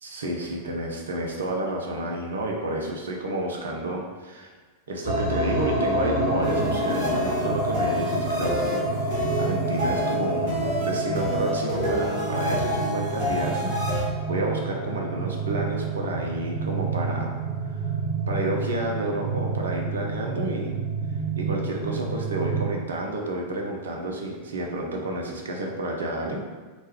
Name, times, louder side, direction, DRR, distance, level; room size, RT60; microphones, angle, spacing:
voice 1, 0.0-4.5 4.9-17.4 17.6-17.9 18.3-20.8 21.4-26.4, right 1 dB, 65° right, 0 dB, 0.5 m, -30 dB
sound 1, 5.0-22.7, right 2 dB, 65° left, 1.3 m, -28 dB
sound 2, 6.4-14.0, equal, 50° right, 1.3 m, -30 dB
3.0 x 2.2 x 3.1 m, 1.3 s
figure-of-eight pair, 90°, 0 cm